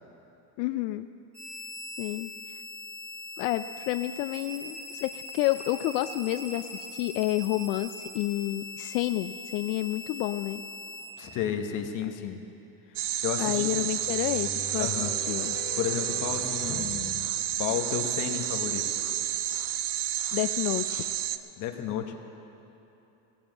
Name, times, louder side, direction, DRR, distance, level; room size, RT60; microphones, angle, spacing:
voice 1, 0.6-1.1 2.0-2.3 3.4-10.6 13.4-14.9 15.3-15.6 20.3-21.1, left 16 dB, 85° left, 10 dB, 0.6 m, -29 dB
sound 1, 1.3-11.0, left 2 dB, 15° right, 3.2 m, -41 dB
voice 2, 11.2-12.4 12.9-13.0 13.2-13.7 14.8-15.1 15.8-17.2 17.6-18.9 21.6-22.1, left 9 dB, 40° left, 4 dB, 1.1 m, -32 dB
sound 2, 13.0-21.4, right 12 dB, 45° right, 0.5 m, -30 dB
sound 3, 13.6-18.3, left 4 dB, 10° left, 2.5 m, -43 dB
19.0 x 7.4 x 7.7 m, 2.9 s
cardioid pair, 160°, 46 cm